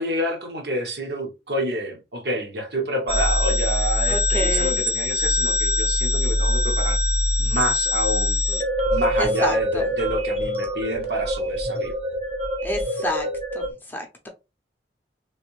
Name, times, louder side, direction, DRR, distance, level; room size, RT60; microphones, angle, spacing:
voice 1, 0.0-7.0 7.4-8.4 8.9-12.0, equal, 60° right, 0.9 m, -28 dB
sound 1, 3.1-13.7, left 1 dB, 35° right, 0.7 m, -23 dB
voice 2, 4.1-4.8 8.5-8.6 9.2-9.9 12.6-13.3 13.5-14.3, left 1 dB, 10° left, 0.5 m, -29 dB
3.2 x 2.6 x 3.0 m
head